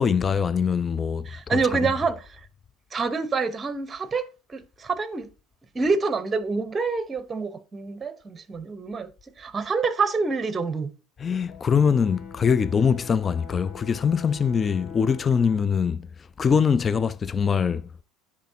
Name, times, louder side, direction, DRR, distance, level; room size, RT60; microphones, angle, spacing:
voice 1, 0.0-1.6 11.2-16.1 16.4-17.9, left 6 dB, 30° left, 0.4 m, -23 dB
voice 2, 1.3-2.4 2.9-5.3 5.7-9.1 9.4-10.9, right 4 dB, 25° right, 1.0 m, -27 dB
Brass instrument, 11.5-15.7, left 5 dB, 55° left, 1.6 m, -46 dB
10.0 x 3.6 x 2.8 m
hypercardioid pair, 80°, 0 cm